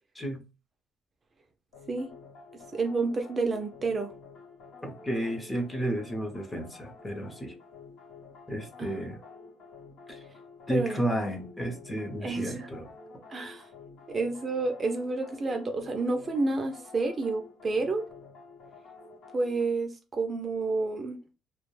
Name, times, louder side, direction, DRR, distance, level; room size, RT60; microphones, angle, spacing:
sound 1, 1.7-19.6, left 4 dB, 85° left, 1.1 m, -50 dB
voice 1, 2.7-4.1 8.8-8.9 10.7-11.0 12.2-12.7 13.3-13.7 14.1-18.0 19.3-21.2, right 3 dB, 30° right, 0.4 m, -29 dB
voice 2, 4.8-7.5 8.5-9.2 10.1-10.2 10.7-12.9, right 1 dB, 15° left, 0.7 m, -32 dB
2.3 x 2.1 x 3.0 m
cardioid pair, 115°, 0 cm